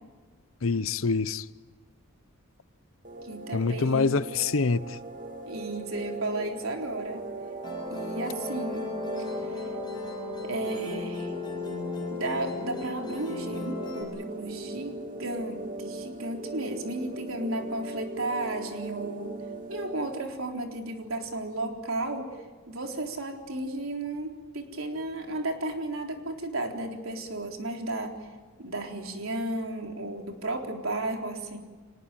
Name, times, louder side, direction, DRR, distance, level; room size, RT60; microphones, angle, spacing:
voice 1, 0.6-1.4 3.5-5.0, left 4 dB, 75° left, 0.8 m, -25 dB
sound 1, 3.0-20.1, right 2 dB, 40° right, 2.5 m, -39 dB
voice 2, 3.2-4.2 5.5-7.3 7.9-8.9 9.5-9.7 10.4-11.3 12.1-14.9 15.2-19.3 19.7-22.4 22.7-28.2 28.6-31.6, right 2 dB, 80° right, 3.9 m, -33 dB
Musical instrument, 7.6-14.0, left 4 dB, 20° left, 7.3 m, -36 dB
25.5 x 20.0 x 9.1 m
head